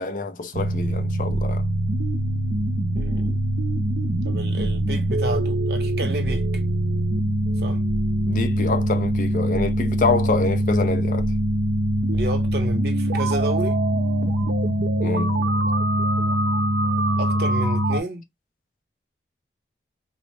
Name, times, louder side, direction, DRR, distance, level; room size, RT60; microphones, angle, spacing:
voice 1, 0.0-1.6 8.2-11.3 15.0-15.3, left 3 dB, 45° left, 0.5 m, -26 dB
sound 1, 0.5-18.0, right 1 dB, 85° right, 0.6 m, -23 dB
voice 2, 2.9-3.4 4.2-6.4 7.6-7.8 12.1-13.8 17.2-18.2, right 1 dB, 65° right, 0.9 m, -30 dB
3.8 x 2.1 x 3.2 m
head